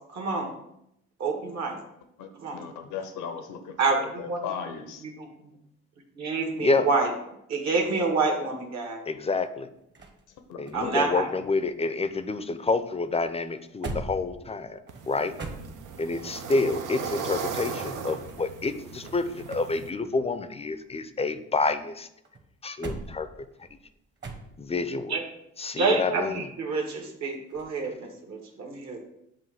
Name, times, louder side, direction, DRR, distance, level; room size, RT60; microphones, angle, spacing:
voice 1, 0.1-0.5 1.2-1.8 2.4-2.6 3.8-4.4 5.0-5.5 6.2-7.1 7.5-9.0 10.7-11.3 25.1-25.2 25.8-29.1, right 4 dB, 60° right, 2 dB, 1.5 m, -28 dB
voice 2, 2.2-5.0 10.5-11.0 11.3-11.4, left 7 dB, 90° left, 6 dB, 0.8 m, -37 dB
voice 3, 9.1-9.7 10.6-14.8 15.1-15.3 16.0-22.1 22.6-23.3 24.6-25.2 25.6-26.5, left 3 dB, 20° left, 11 dB, 0.4 m, -28 dB
sound 1, 9.2-12.3 12.6-16.2 17.9-19.7 20.0-21.8 22.2-24.9 27.5-27.8, right 2 dB, 35° right, 1.1 m, -43 dB
sound 2, 14.9-19.9, right 6 dB, 90° right, 0.7 m, -37 dB
7.6 x 2.6 x 5.7 m, 0.79 s
cardioid pair, 90°, 30 cm